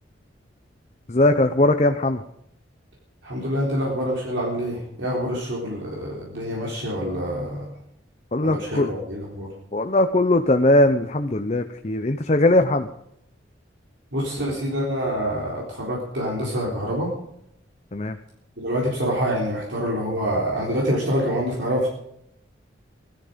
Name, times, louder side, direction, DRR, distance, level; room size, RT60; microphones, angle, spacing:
voice 1, 1.1-2.2 8.3-8.9 9.7-12.9 17.9-18.2, left 1 dB, 35° left, 7 dB, 0.7 m, -20 dB
voice 2, 3.2-7.6 8.4-9.5 14.1-17.1 18.6-21.9, equal, 75° right, -3 dB, 3.9 m, -26 dB
17.0 x 13.0 x 5.1 m, 0.75 s
head